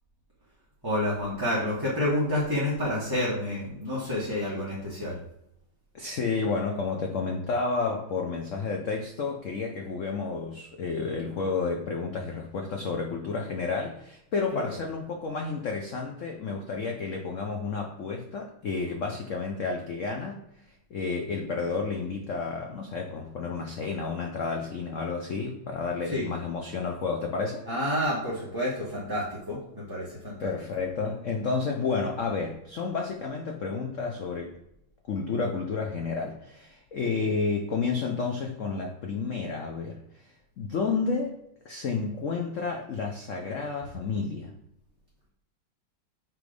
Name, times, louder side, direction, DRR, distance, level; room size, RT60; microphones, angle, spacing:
voice 1, 0.8-5.2 14.5-14.7 26.1-26.3 27.7-30.5, left 1 dB, 15° right, -8 dB, 1.2 m, -29 dB
voice 2, 5.9-20.4 20.9-27.6 30.4-34.6 35.1-40.0 40.6-41.4 41.6-44.5, left 4 dB, 70° left, 2 dB, 0.7 m, -31 dB
6.1 x 3.9 x 5.1 m, 0.78 s
omnidirectional pair, 2.2 m